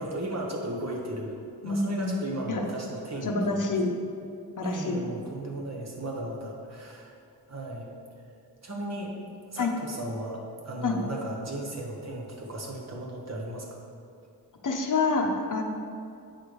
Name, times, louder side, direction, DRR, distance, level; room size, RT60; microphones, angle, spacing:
voice 1, 0.0-1.4 1.6-4.0 4.6-7.1 7.5-7.9 8.6-9.1 9.5-13.8, right 1 dB, 40° right, -1 dB, 1.1 m, -35 dB
voice 2, 1.6-2.1 2.5-2.6 3.2-3.9 4.6-5.0 9.6-9.7 10.8-11.0 14.6-15.6, left 3 dB, 50° left, 2 dB, 0.8 m, -27 dB
8.3 x 3.3 x 6.1 m, 2.4 s
wide cardioid pair, 160°, 40 cm